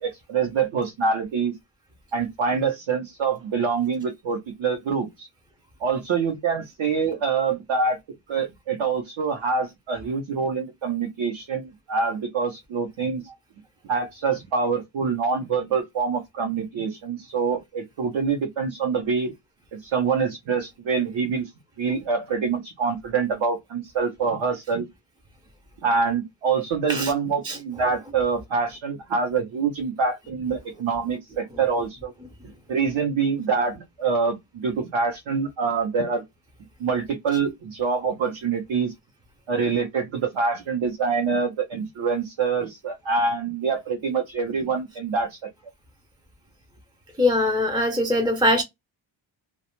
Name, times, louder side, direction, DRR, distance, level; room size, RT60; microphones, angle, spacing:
voice 1, 0.0-1.5 2.1-5.3 5.8-8.0 8.3-13.3 13.9-19.3 19.7-21.5 21.8-24.9 25.8-32.1 32.7-36.2 36.8-38.9 39.5-45.4, right 5 dB, 75° right, 0.8 m, -25 dB
voice 2, 47.2-48.6, left 1 dB, 10° right, 0.3 m, -21 dB
2.3 x 2.1 x 2.9 m
wide cardioid pair, 135°, 47 cm